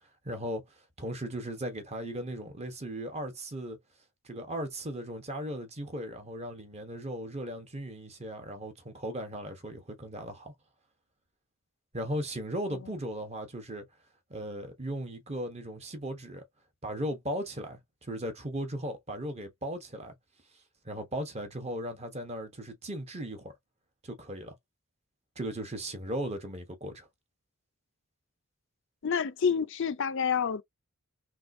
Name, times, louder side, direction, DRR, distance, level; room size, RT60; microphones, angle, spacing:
voice 1, 0.2-0.6 1.0-3.8 4.2-10.5 11.9-13.9 14.3-16.4 16.8-20.2 20.8-23.5 24.0-24.6 25.4-27.1, right 1 dB, 30° right, 1.0 m, -37 dB
voice 2, 29.0-30.6, left 6 dB, 60° left, 0.5 m, -28 dB
3.5 x 2.6 x 2.6 m
head